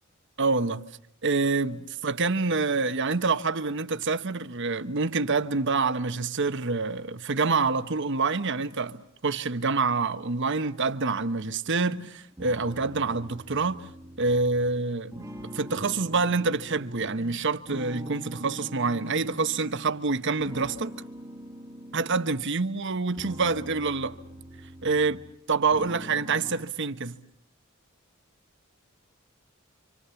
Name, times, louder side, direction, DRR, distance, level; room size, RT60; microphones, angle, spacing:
voice 1, 0.4-0.8 1.2-13.8 14.2-15.3 15.5-20.9 21.9-24.2 24.8-25.2 25.5-27.1, right 4 dB, 60° right, 1.1 m, -27 dB
sound 1, 12.4-17.3 17.7-19.9 20.4-22.5 23.0-25.4 25.7-26.6, equal, 15° right, 1.5 m, -43 dB
28.5 x 26.0 x 7.0 m
head